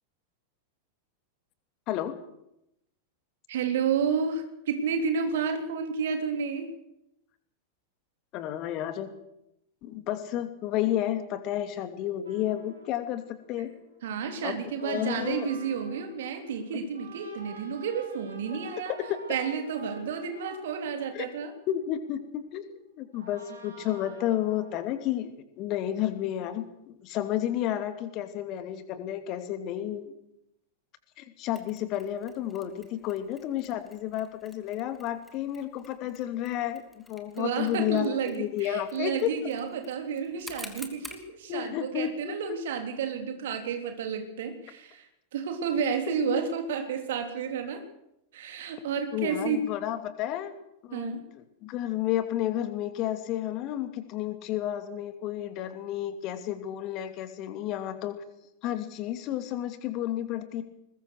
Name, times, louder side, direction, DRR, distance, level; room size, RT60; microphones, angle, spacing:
voice 1, 3.5-6.7 14.0-18.9 19.3-21.5 37.4-45.1 45.3-47.8 48.3-49.6 50.9-51.2, right 6 dB, 60° right, 6 dB, 3.4 m, -31 dB
voice 2, 8.3-9.1 9.8-13.7 14.4-15.5 16.7-16.8 18.5-18.6 19.1-19.2 21.1-21.3 21.7-30.1 31.2-39.3 41.5-42.4 46.3-46.4 49.1-50.5 50.8-58.2 58.6-60.6, left 12 dB, 40° left, 9 dB, 2.5 m, -31 dB
sound 1, 12.2-22.6 23.1-25.1, right 3 dB, 75° right, 4.5 m, -49 dB
Mechanisms, 31.5-41.3, left 1 dB, 5° left, 2.9 m, -50 dB
21.0 x 21.0 x 6.6 m, 0.84 s
figure-of-eight pair, 90°, 0 cm